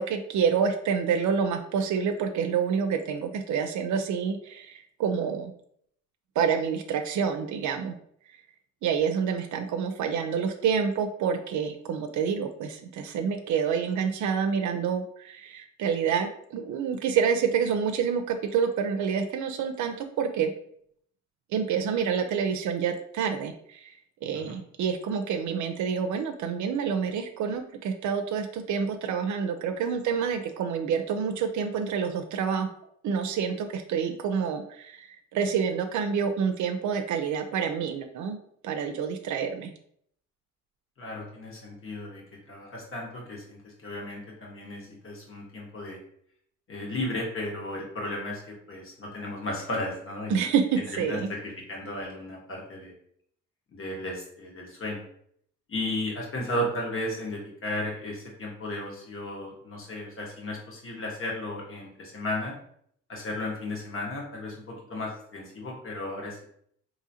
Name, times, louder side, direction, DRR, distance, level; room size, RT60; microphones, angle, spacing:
voice 1, 0.0-5.5 6.4-7.9 8.8-20.5 21.5-23.9 24.2-32.7 33.0-38.4 38.6-39.7 50.3-51.3, right 6 dB, 75° right, 6 dB, 0.5 m, -28 dB
voice 2, 41.0-46.0 46.7-50.4 50.8-52.9 53.7-55.1 55.7-62.5 63.1-66.5, left 1 dB, 45° left, -2 dB, 1.4 m, -34 dB
3.7 x 3.0 x 2.8 m, 0.66 s
cardioid pair, 90°, 30 cm